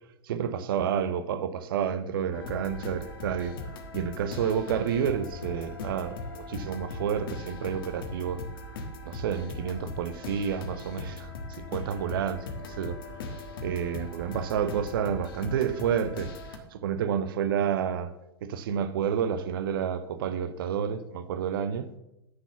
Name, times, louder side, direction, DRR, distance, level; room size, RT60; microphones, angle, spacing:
voice 1, 0.2-3.6 3.9-8.4 9.0-18.1 18.4-21.9, right 8 dB, 55° right, 0.8 m, -30 dB
sound 1, 2.3-16.6, left 2 dB, 55° left, 1.4 m, -39 dB
9.6 x 6.1 x 6.9 m
figure-of-eight pair, 90°, 14 cm